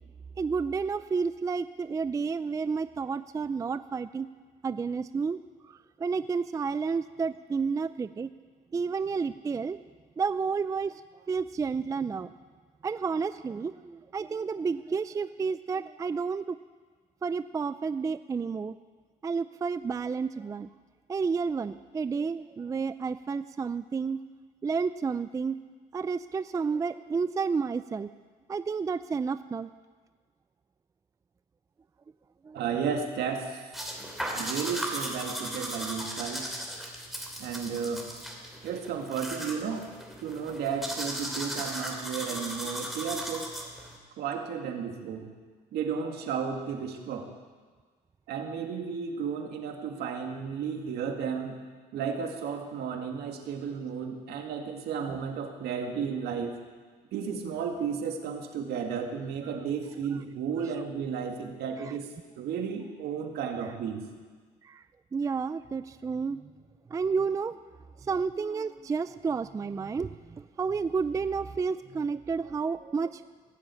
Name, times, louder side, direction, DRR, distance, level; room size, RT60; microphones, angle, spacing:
voice 1, 0.4-4.3 4.6-5.4 5.7-8.3 8.7-9.8 10.2-11.0 11.3-12.3 12.8-16.6 17.2-18.7 19.2-20.7 21.1-24.2 24.6-25.6 25.9-28.1 28.5-29.7 32.4-32.6 64.6-64.8 65.1-66.4 66.9-67.6 68.0-73.2, right 5 dB, 20° right, 13 dB, 0.4 m, -31 dB
voice 2, 32.5-33.8 34.3-36.5 37.4-38.1 38.6-39.8 40.2-43.5 44.2-45.3 45.7-47.3 48.3-51.6 51.9-56.6 57.1-62.1 62.4-64.0, right 6 dB, 75° right, 3 dB, 2.1 m, -33 dB
sound 1, 33.7-44.0, equal, ahead, 2.7 m, -37 dB
17.5 x 7.6 x 8.5 m, 1.5 s
cardioid pair, 110°, 17 cm